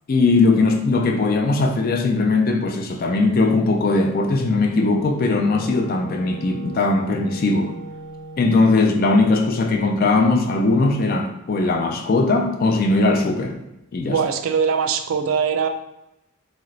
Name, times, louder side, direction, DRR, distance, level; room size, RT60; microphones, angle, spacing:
voice 1, 0.1-7.7 8.4-13.6 13.9-14.2, left 3 dB, 40° left, 3 dB, 0.3 m, -19 dB
Wind instrument woodwind instrument, 4.1-8.6, right 1 dB, 50° right, 0.8 m, -38 dB
voice 2, 14.1-15.7, right 6 dB, 70° right, 7 dB, 0.3 m, -21 dB
2.9 x 2.4 x 3.1 m, 0.88 s
head